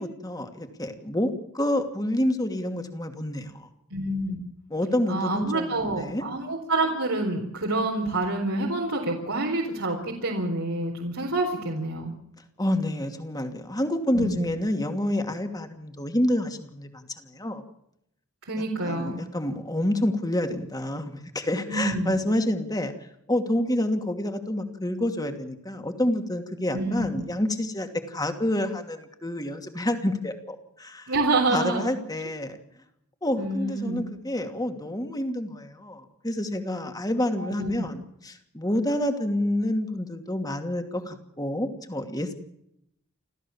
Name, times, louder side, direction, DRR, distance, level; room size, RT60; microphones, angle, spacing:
voice 1, 0.0-3.7 4.7-6.2 12.6-17.6 18.8-22.9 23.3-31.1 31.5-32.6 33.2-42.4, left 1 dB, 15° left, 6 dB, 2.6 m, -28 dB
voice 2, 3.9-4.4 5.1-12.1 14.1-14.5 18.5-19.2 21.7-22.2 26.7-27.3 31.1-31.9 33.4-34.0 37.4-37.7, right 2 dB, 80° right, -1 dB, 4.3 m, -27 dB
29.5 x 14.5 x 7.3 m, 0.76 s
head